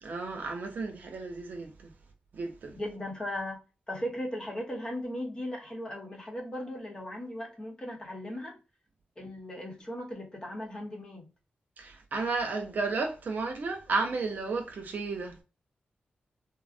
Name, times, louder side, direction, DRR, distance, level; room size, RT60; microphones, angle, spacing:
voice 1, 0.0-1.9 2.3-2.7 11.8-15.4, right 3 dB, 60° right, 0.7 m, -33 dB
voice 2, 2.7-3.6 3.9-8.6 9.2-11.3, left 1 dB, 25° left, 0.9 m, -37 dB
3.8 x 2.1 x 2.4 m
wide cardioid pair, 165°, 3 cm